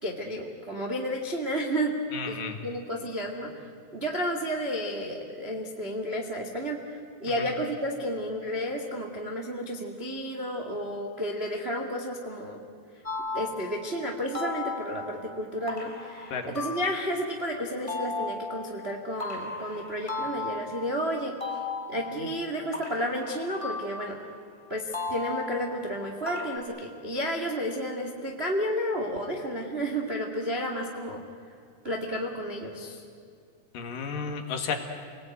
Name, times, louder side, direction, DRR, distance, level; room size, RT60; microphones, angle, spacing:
voice 1, 0.0-12.6 13.3-21.6 21.9-24.2 24.7-31.2 31.8-33.0, equal, 35° right, 2 dB, 1.0 m, -32 dB
voice 2, 2.1-2.6 16.3-16.5 33.7-34.7, left 6 dB, 60° left, 5 dB, 2.9 m, -32 dB
sound 1, 13.0-17.3 17.9-24.4 24.9-26.6, left 3 dB, 15° left, 1.3 m, -36 dB
28.5 x 20.0 x 9.2 m, 2.4 s
omnidirectional pair, 5.0 m